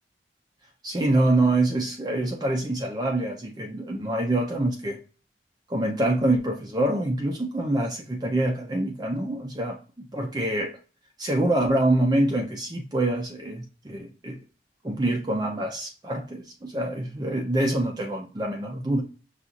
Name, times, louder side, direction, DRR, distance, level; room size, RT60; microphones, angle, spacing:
voice 1, 0.8-5.0 5.7-10.8 11.2-14.4 14.8-19.0, right 1 dB, 20° right, 0.4 m, -25 dB
5.7 x 2.4 x 2.5 m
head